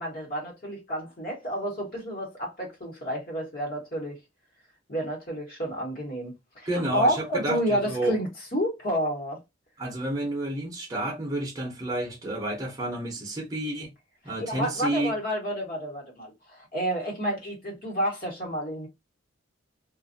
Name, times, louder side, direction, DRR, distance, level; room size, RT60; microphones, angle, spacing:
voice 1, 0.0-4.2 4.9-9.4 14.4-18.9, equal, 50° left, 1.3 m, -30 dB
voice 2, 6.7-8.1 9.8-13.9 14.2-15.1, right 1 dB, 20° right, 0.7 m, -30 dB
2.6 x 2.5 x 2.5 m
head